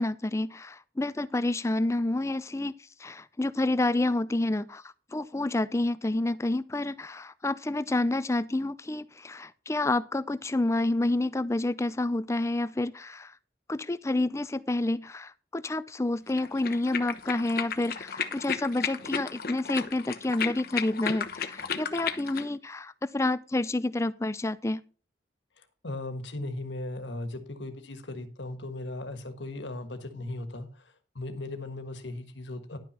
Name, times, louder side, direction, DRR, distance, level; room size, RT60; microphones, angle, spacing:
voice 1, 0.0-2.7 3.0-4.8 5.1-13.3 13.7-24.8, left 2 dB, 15° left, 0.4 m, -29 dB
sound 1, 16.3-22.5, left 7 dB, 55° left, 1.0 m, -34 dB
voice 2, 25.6-32.8, left 2 dB, 85° left, 1.6 m, -37 dB
11.5 x 5.9 x 5.5 m
head